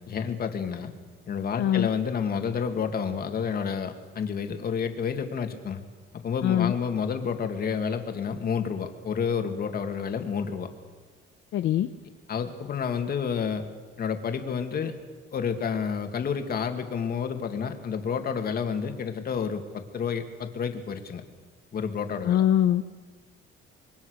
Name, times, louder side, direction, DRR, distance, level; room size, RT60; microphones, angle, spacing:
voice 1, 0.1-0.9 1.3-5.8 6.1-10.7 12.3-13.6 14.0-15.0 15.3-21.2 21.7-22.4, left 6 dB, 45° left, 6 dB, 2.4 m, -30 dB
voice 2, 1.6-1.9 6.4-6.7 11.5-11.9 22.2-22.8, left 11 dB, 65° left, 8 dB, 0.9 m, -22 dB
26.0 x 23.0 x 6.6 m, 1.4 s
cardioid pair, 130°, 21 cm